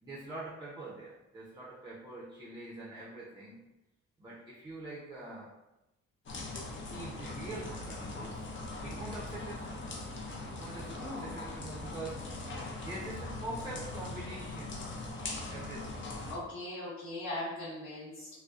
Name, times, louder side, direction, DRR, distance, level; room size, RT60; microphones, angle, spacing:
voice 1, 0.0-3.7 4.2-5.5 6.9-8.5 8.8-10.0 10.4-12.2 12.8-14.9 15.3-15.9, right 2 dB, 15° right, -5 dB, 0.5 m, -44 dB
sound 1, 6.3-16.4, left 2 dB, 40° left, 0.5 m, -41 dB
voice 2, 10.8-11.3 16.3-18.3, left 1 dB, 85° left, -12 dB, 1.2 m, -40 dB
2.6 x 2.0 x 2.3 m, 0.96 s
cardioid pair, 90°, 30 cm